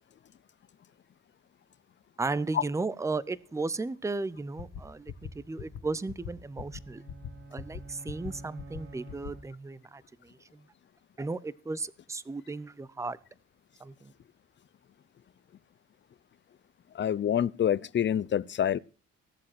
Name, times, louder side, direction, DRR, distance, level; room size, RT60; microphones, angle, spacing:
voice 1, 2.2-7.0 7.5-10.7 11.2-13.2 13.8-14.1, right 3 dB, 10° right, 0.6 m, -35 dB
sound 1, 4.6-4.8 5.1-5.3 5.6-5.8 6.1-6.3 6.6-6.8 7.1-7.3 7.6-7.8 8.1-8.3 8.6-8.8 9.1-9.3, left 8 dB, 75° left, 2.0 m, -39 dB
sound 2, 6.4-10.0, right 2 dB, 45° right, 2.0 m, -49 dB
voice 2, 16.9-18.8, left 9 dB, 40° left, 0.6 m, -27 dB
17.5 x 7.7 x 6.0 m
cardioid pair, 90°, 30 cm